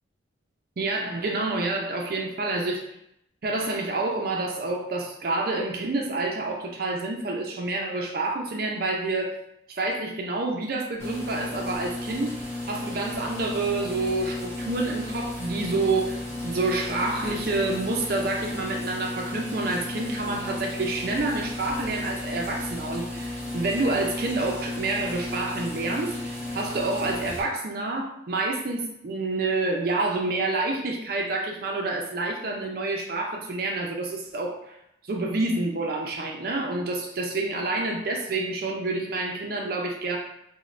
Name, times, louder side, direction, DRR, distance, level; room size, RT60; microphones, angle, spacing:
voice 1, 0.8-2.8 3.4-9.3 9.7-12.3 12.7-34.7 35.1-40.2, right 2 dB, 50° right, 0 dB, 0.4 m, -28 dB
sound 1, 11.0-27.4, left 2 dB, 35° left, 1.3 m, -34 dB
5.0 x 2.1 x 2.5 m, 0.78 s
head